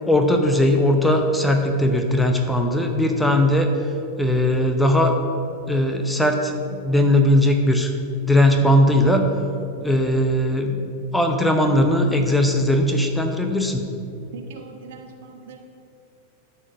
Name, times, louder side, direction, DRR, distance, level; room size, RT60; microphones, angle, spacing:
voice 1, 0.0-3.9 4.2-5.1 5.7-7.9 8.3-9.3 9.8-10.8 11.1-13.8, left 1 dB, 5° left, 4 dB, 0.8 m, -19 dB
voice 2, 14.3-15.6, right 5 dB, 55° right, 3 dB, 1.2 m, -40 dB
12.0 x 4.4 x 6.6 m, 2.6 s
figure-of-eight pair, 90°, 0 cm